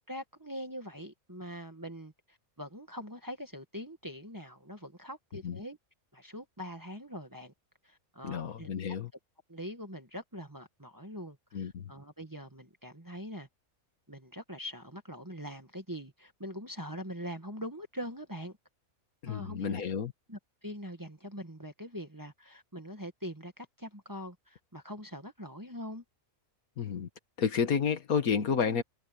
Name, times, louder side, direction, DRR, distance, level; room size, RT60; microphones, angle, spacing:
voice 1, 0.1-5.8 6.1-7.5 7.8-8.7 9.5-13.5 14.1-18.6 19.2-19.8 20.3-26.0, equal, 15° right, 1.7 m, -43 dB
voice 2, 8.2-9.1 11.5-11.9 19.2-20.1 26.8-27.1 27.4-28.8, left 6 dB, 80° left, 1.9 m, -30 dB
omnidirectional pair, 1.5 m